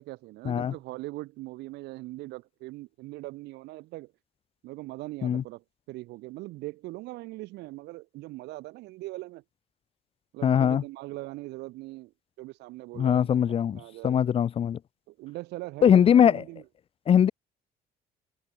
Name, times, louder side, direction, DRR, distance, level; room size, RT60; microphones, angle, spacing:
voice 1, 0.0-4.1 4.6-9.4 10.3-12.1 12.4-14.3 15.1-16.7, right 19 dB, 85° right, 2.4 m, -41 dB
voice 2, 10.4-10.8 13.0-14.8 15.8-16.3 17.1-17.3, left 9 dB, 35° left, 0.4 m, -21 dB
cardioid pair, 110°, 17 cm